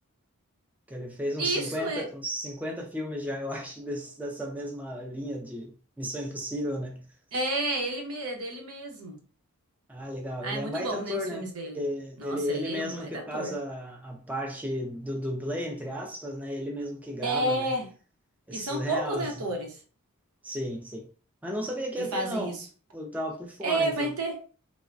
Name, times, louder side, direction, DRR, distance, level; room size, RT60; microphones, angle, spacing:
voice 1, 0.9-7.0 9.9-11.5 11.7-17.7 18.5-19.3 20.4-21.1 21.4-22.6 22.9-24.1, equal, 5° right, 0.4 m, -34 dB
voice 2, 1.4-2.0 7.3-9.2 10.4-11.8 12.2-13.5 17.2-17.9 18.5-19.8 22.0-22.6 23.6-24.4, right 2 dB, 80° right, 0.8 m, -31 dB
3.1 x 2.1 x 2.5 m
head